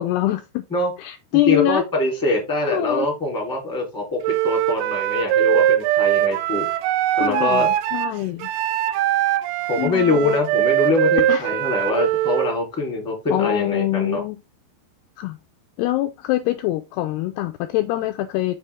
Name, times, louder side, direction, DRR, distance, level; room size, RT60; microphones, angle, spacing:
voice 1, 0.0-0.6 1.0-1.8 2.7-3.1 7.1-8.5 9.8-10.4 11.3-11.6 13.3-14.4 15.2-15.4 15.8-18.6, left 15 dB, 85° left, 2.3 m, -24 dB
voice 2, 1.4-6.7 7.2-7.7 9.7-14.2, left 2 dB, 5° left, 2.7 m, -23 dB
Wind instrument woodwind instrument, 4.2-12.6, right 12 dB, 85° right, 2.9 m, -21 dB
7.3 x 6.7 x 3.6 m
omnidirectional pair, 5.3 m